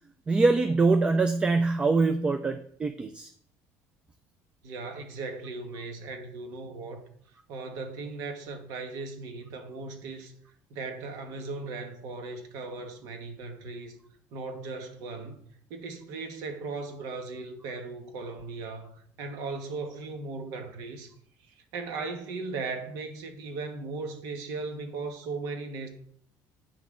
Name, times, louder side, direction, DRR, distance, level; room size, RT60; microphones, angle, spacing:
voice 1, 0.3-3.3, right 3 dB, 15° right, 0.3 m, -24 dB
voice 2, 4.6-7.0 7.5-10.3 10.7-14.0 14.3-15.4 15.7-21.1 21.7-25.9, right 3 dB, 75° right, 1.2 m, -37 dB
9.0 x 5.8 x 3.7 m
cardioid pair, 160°, 6 cm